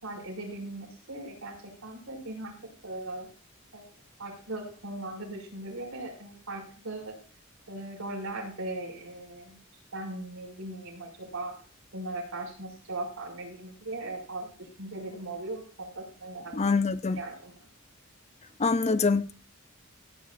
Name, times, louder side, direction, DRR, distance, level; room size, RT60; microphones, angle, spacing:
voice 1, 0.0-2.5 2.8-3.3 3.7-3.8 4.2-7.2 7.7-9.6 9.9-11.5 11.9-16.8 17.2-17.6, right 2 dB, 90° right, 5.9 m, -39 dB
voice 2, 16.5-17.2 18.6-19.3, left 4 dB, 30° left, 0.6 m, -25 dB
17.0 x 9.8 x 2.6 m
head